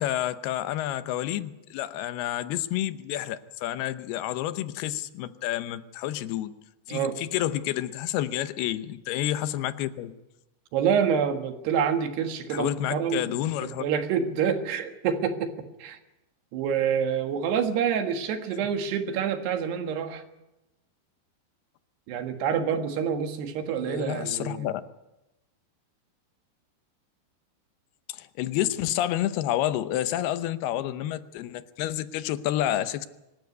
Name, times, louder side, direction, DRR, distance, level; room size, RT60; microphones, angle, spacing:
voice 1, 0.0-6.5 6.9-10.2 12.5-13.9 23.8-24.8 28.1-33.1, left 13 dB, 80° left, 12 dB, 2.8 m, -29 dB
voice 2, 10.7-13.4 13.6-16.0 16.5-20.2 22.1-24.7, right 7 dB, 80° right, 6 dB, 3.7 m, -27 dB
24.5 x 13.0 x 9.5 m, 0.97 s
omnidirectional pair, 4.7 m